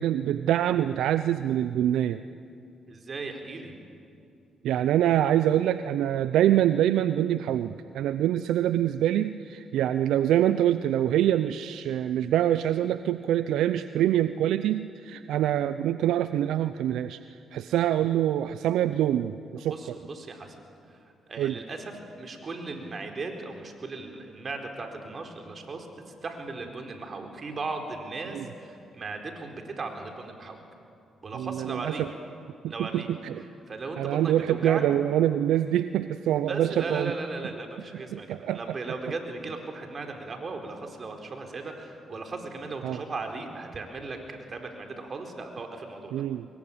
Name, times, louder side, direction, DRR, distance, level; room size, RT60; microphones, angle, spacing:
voice 1, 0.0-2.2 4.6-17.2 17.5-20.0 21.4-21.6 28.3-28.4 31.3-31.9 32.8-33.4 34.0-37.1 38.1-38.6 42.8-43.0 46.1-46.5, right 11 dB, 80° right, 12 dB, 0.5 m, -25 dB
voice 2, 2.9-3.8 19.7-20.5 21.3-21.9 22.2-25.9 26.2-30.6 31.2-32.1 32.7-33.1 33.7-34.8 36.5-46.2, right 3 dB, 45° right, 4 dB, 4.3 m, -37 dB
24.0 x 21.5 x 8.8 m, 2.5 s
supercardioid pair, 60°, 0 cm